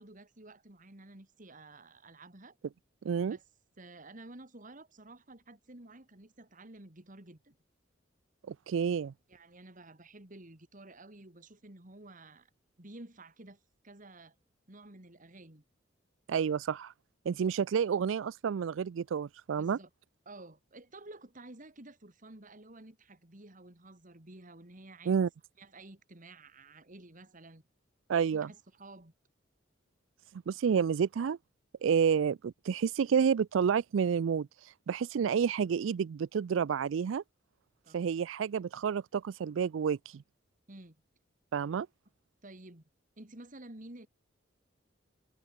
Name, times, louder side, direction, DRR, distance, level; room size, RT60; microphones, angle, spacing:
voice 1, 0.0-2.6 3.2-3.4 3.8-7.6 9.3-12.5 12.8-14.4 14.7-15.6 19.6-19.9 20.3-25.2 25.6-27.6 28.3-29.1 37.9-38.0 39.4-39.5 40.7-41.0 42.4-42.8 43.2-44.1, right 2 dB, 45° right, 2.6 m, -52 dB
voice 2, 3.0-3.4 8.5-9.1 16.3-16.9 17.3-19.8 25.1-25.3 28.1-28.5 30.5-31.4 31.8-34.5 34.9-37.2 37.9-40.2 41.5-41.9, right 7 dB, 80° right, 0.4 m, -29 dB
head